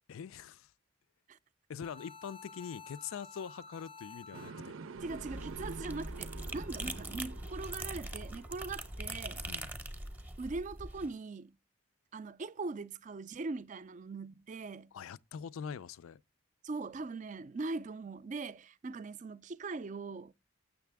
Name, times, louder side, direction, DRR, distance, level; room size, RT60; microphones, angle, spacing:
voice 1, 0.1-0.7 1.7-4.7 9.4-9.7 14.9-16.2, left 7 dB, 90° left, 0.4 m, -43 dB
sound 1, 1.8-4.9, left 5 dB, 25° left, 0.5 m, -51 dB
sound 2, 4.3-10.3, right 5 dB, 85° right, 0.5 m, -49 dB
sound 3, 5.0-11.1, right 1 dB, 10° right, 0.7 m, -42 dB
voice 2, 5.0-9.4 10.4-11.6 12.1-14.9 16.6-20.3, right 3 dB, 35° right, 0.4 m, -41 dB
7.1 x 6.6 x 3.4 m
head